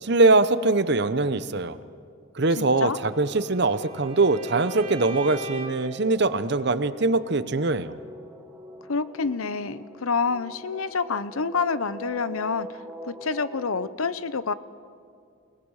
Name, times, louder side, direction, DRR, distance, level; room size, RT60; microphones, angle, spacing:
voice 1, 0.0-1.8 2.3-8.0, right 3 dB, 50° right, 13 dB, 0.8 m, -22 dB
voice 2, 2.6-3.0 8.9-12.7 13.1-14.5, left 4 dB, 85° left, 15 dB, 0.8 m, -27 dB
Bowed string instrument, 2.9-5.9, right 4 dB, 25° right, 6.1 m, -42 dB
sound 1, 3.3-13.9, right 1 dB, 5° right, 1.4 m, -43 dB
29.5 x 19.0 x 6.5 m, 2.4 s
head